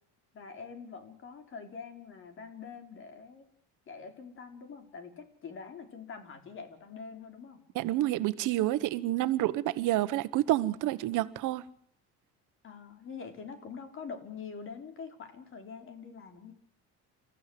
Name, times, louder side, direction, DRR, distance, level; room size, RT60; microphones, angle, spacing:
voice 1, 0.3-3.5 3.9-7.6 12.6-16.5, left 5 dB, 40° left, 3.8 m, -45 dB
voice 2, 7.7-11.6, right 15 dB, 80° right, 1.3 m, -28 dB
28.5 x 14.5 x 7.7 m
cardioid pair, 150°, 30 cm